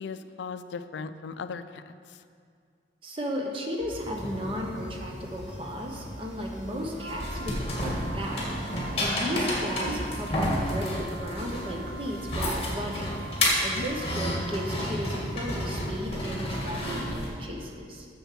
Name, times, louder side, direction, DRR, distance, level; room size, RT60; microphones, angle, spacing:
voice 1, 0.0-2.2 9.3-9.6 13.8-13.9, left 5 dB, 75° left, 11 dB, 0.4 m, -38 dB
voice 2, 3.0-8.4 8.9-13.2 13.6-18.1, equal, 30° right, 1 dB, 0.9 m, -35 dB
sound 1, 3.8-17.7, equal, 5° right, 1.7 m, -44 dB
sound 2, 3.9-17.3, left 1 dB, 30° left, 1.8 m, -31 dB
Wind instrument woodwind instrument, 6.9-15.1, right 4 dB, 60° right, 0.4 m, -43 dB
7.0 x 7.0 x 5.9 m, 2.2 s
head